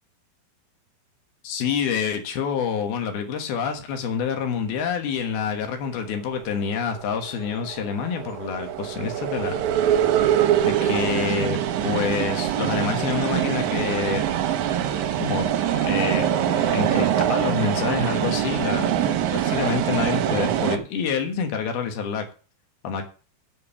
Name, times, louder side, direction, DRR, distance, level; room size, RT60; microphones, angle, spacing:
voice 1, 1.5-9.5 9.9-10.0 10.6-14.4 14.8-14.9 15.2-15.5 15.8-22.3 22.8-23.0, left 6 dB, 80° left, 5 dB, 3.3 m, -27 dB
sound 1, 6.7-20.8, right 10 dB, 70° right, 1.9 m, -24 dB
9.5 x 5.5 x 7.0 m, 0.37 s
omnidirectional pair, 4.3 m